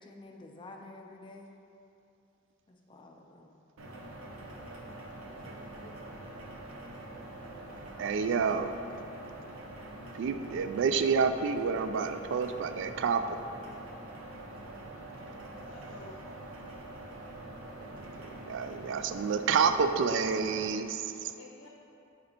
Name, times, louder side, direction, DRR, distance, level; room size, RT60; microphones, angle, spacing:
voice 1, 0.0-1.5 2.7-3.5, left 2 dB, 25° left, 2 dB, 0.5 m, -50 dB
sound 1, 3.8-20.7, right 1 dB, 85° right, 0.8 m, -45 dB
voice 2, 5.2-6.2 15.7-16.2 21.3-21.7, left 2 dB, 65° left, -1 dB, 0.6 m, -53 dB
voice 3, 8.0-8.7 10.2-13.4 18.5-21.3, right 5 dB, 60° right, 9 dB, 0.3 m, -29 dB
9.3 x 4.3 x 2.8 m, 2.7 s
head